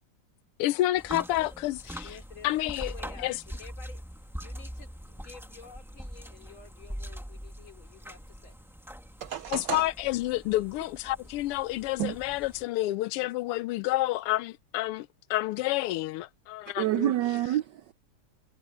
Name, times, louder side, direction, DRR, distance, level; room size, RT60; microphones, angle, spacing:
voice 1, 0.6-2.1 2.4-2.9 3.2-3.4 9.5-17.1, left 16 dB, 90° left, 1.6 m, -29 dB
sound 1, 1.0-12.6, equal, ahead, 1.3 m, -43 dB
voice 2, 2.0-4.0 4.4-8.7 13.2-13.7, left 5 dB, 65° left, 3.8 m, -51 dB
voice 3, 9.2-9.9 12.0-12.2 16.8-17.9, right 13 dB, 80° right, 0.9 m, -28 dB
omnidirectional pair, 2.4 m